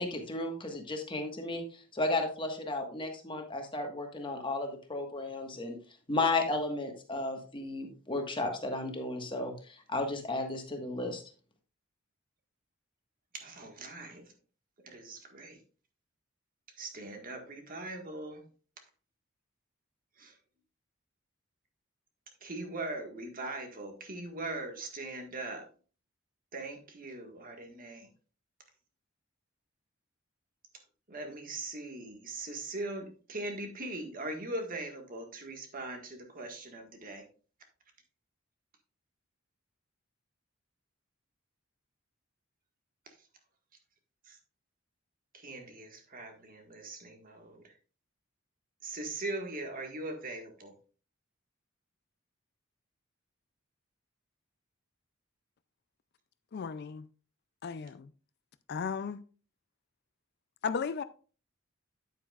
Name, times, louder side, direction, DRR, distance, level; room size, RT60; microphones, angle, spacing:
voice 1, 0.0-5.8 6.1-11.2, left 2 dB, 25° left, 1.4 m, -34 dB
voice 2, 13.3-14.3 14.8-15.6 16.8-18.4 20.2-20.4 22.4-25.6 26.5-28.1 31.1-37.3 43.0-43.3 44.2-44.4 45.3-47.8 48.8-50.7, right 2 dB, 45° right, 1.7 m, -41 dB
voice 3, 56.5-57.1 57.6-58.1 58.7-59.2 60.6-61.0, left 5 dB, 50° left, 0.4 m, -35 dB
9.3 x 8.6 x 2.4 m
head